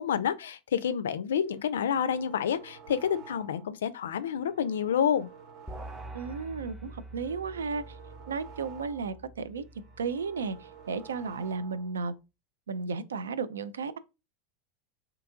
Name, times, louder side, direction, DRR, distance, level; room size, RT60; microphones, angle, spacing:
voice 1, 0.0-5.3, left 8 dB, 75° left, 0.3 m, -29 dB
sound 1, 1.4-3.8 4.2-6.5 6.9-9.2 9.6-12.0, right 6 dB, 50° right, 1.0 m, -51 dB
sound 2, 5.7-11.2, right 1 dB, 5° right, 0.7 m, -46 dB
voice 2, 6.1-8.0 8.3-9.6 10.0-12.1 12.7-14.0, right 4 dB, 85° right, 0.3 m, -34 dB
2.8 x 2.5 x 3.6 m
hypercardioid pair, 90°, 0 cm